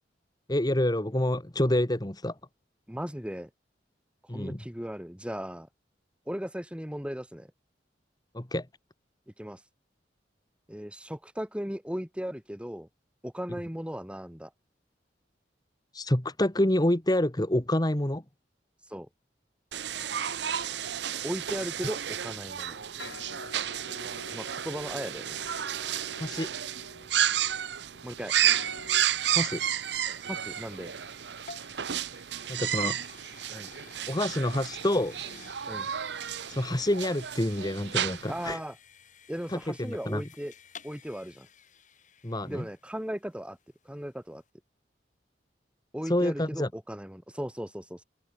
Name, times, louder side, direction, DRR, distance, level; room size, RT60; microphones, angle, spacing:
voice 1, 0.5-2.3 4.3-4.6 8.3-8.7 13.5-13.6 15.9-18.2 26.2-26.5 29.3-29.6 32.5-33.0 34.1-35.2 36.5-38.6 39.5-40.2 42.2-42.6 46.0-46.7, left 1 dB, 20° left, 1.7 m, -27 dB
voice 2, 2.9-3.5 4.2-5.7 6.3-7.5 9.4-9.7 10.7-12.9 13.2-14.5 18.8-19.1 21.2-22.8 24.3-25.4 28.0-28.4 30.2-31.0 33.5-33.7 35.7-35.9 38.3-38.8 39.3-40.5 40.8-41.5 42.4-43.6 43.8-44.4 45.9-48.0, equal, 5° right, 2.4 m, -37 dB
sound 1, 19.7-38.5, right 10 dB, 70° right, 0.8 m, -32 dB
sound 2, 22.8-29.1, left 3 dB, 85° left, 3.6 m, -48 dB
sound 3, 28.0-43.2, left 5 dB, 45° left, 5.2 m, -53 dB
head